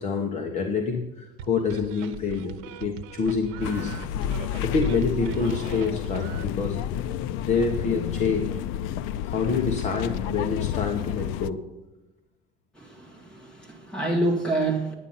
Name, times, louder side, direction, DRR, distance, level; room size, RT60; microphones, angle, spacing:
voice 1, 0.0-3.9 4.6-6.8 7.4-8.6 9.2-11.6, left 5 dB, 35° left, 2 dB, 1.2 m, -27 dB
sound 1, 1.4-6.4, right 9 dB, 85° right, 0.9 m, -40 dB
sound 2, 3.6-11.5, left 10 dB, 75° left, 0.5 m, -30 dB
voice 2, 12.7-14.9, right 2 dB, 5° left, -1 dB, 2.1 m, -27 dB
10.5 x 9.1 x 5.6 m, 1.0 s
cardioid pair, 165°, 21 cm